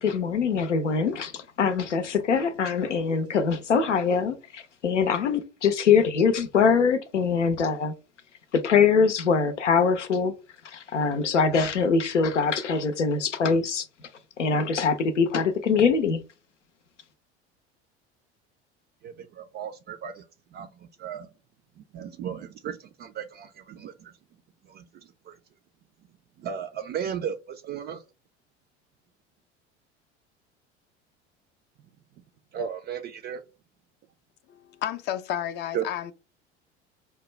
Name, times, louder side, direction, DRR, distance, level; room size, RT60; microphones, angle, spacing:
voice 1, 0.0-7.9 8.5-10.3 10.6-13.9 14.4-16.2, left 5 dB, 80° left, 0.6 m, -23 dB
voice 2, 19.0-20.2 20.5-21.3 21.8-24.1 24.6-25.4 26.4-28.0 32.5-33.4 35.7-35.8, right 8 dB, 30° right, 0.4 m, -35 dB
voice 3, 34.5-36.1, left 11 dB, 30° left, 0.5 m, -31 dB
5.0 x 2.2 x 3.1 m
figure-of-eight pair, 70°, 35 cm